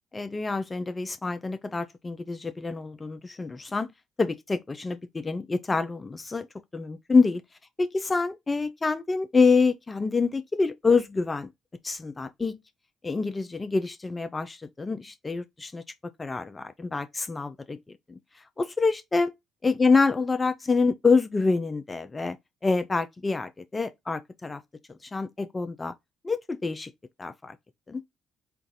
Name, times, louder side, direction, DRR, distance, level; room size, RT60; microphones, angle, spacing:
voice 1, 0.1-3.9 4.2-6.5 6.7-7.4 7.8-11.5 11.8-12.6 13.0-15.8 16.2-17.8 18.1-18.2 18.6-19.3 19.6-22.4 22.6-24.6 25.1-25.9 26.2-26.9 27.2-27.6 27.9-28.0, left 4 dB, 30° left, 0.6 m, -26 dB
4.6 x 2.6 x 3.8 m
hypercardioid pair, 50°, 0 cm